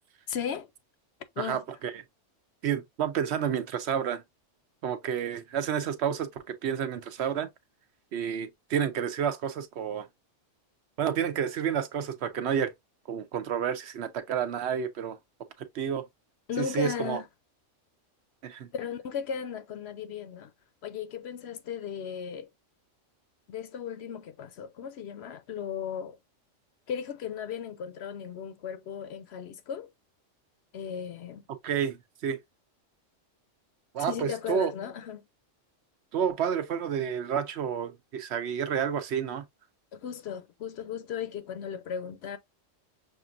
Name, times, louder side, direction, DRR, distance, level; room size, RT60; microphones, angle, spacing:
voice 1, 0.3-0.7 1.4-1.6 16.5-17.3 18.7-20.5 20.8-22.5 23.5-26.2 26.9-29.9 30.7-31.4 34.0-35.2 39.9-42.4, left 7 dB, 65° left, 0.8 m, -36 dB
voice 2, 1.4-2.0 2.6-4.2 4.8-7.5 8.1-10.1 11.0-12.7 13.1-15.2 15.7-16.1 16.6-17.2 18.4-18.7 31.6-32.4 33.9-34.7 36.1-39.4, right 8 dB, 65° right, 0.8 m, -30 dB
6.3 x 2.5 x 2.4 m
omnidirectional pair, 1.3 m